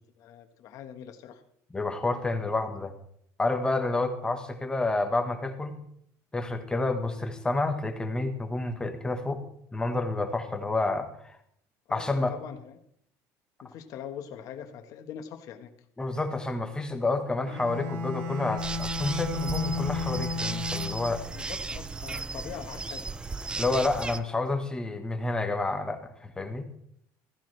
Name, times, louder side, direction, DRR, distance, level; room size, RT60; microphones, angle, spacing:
voice 1, 0.2-1.4 11.9-12.8 13.6-15.7 21.3-23.1, left 8 dB, 55° left, 7 dB, 1.4 m, -42 dB
voice 2, 1.7-2.9 3.4-5.8 6.3-9.4 9.7-11.3 11.9-12.4 16.0-21.3 23.6-26.7, left 2 dB, 10° left, 6 dB, 1.3 m, -29 dB
Bowed string instrument, 17.4-21.3, left 4 dB, 65° right, 1.6 m, -33 dB
sound 1, 18.6-24.2, right 3 dB, 15° right, 0.5 m, -35 dB
15.0 x 15.0 x 3.3 m, 0.71 s
cardioid pair, 140°, 7 cm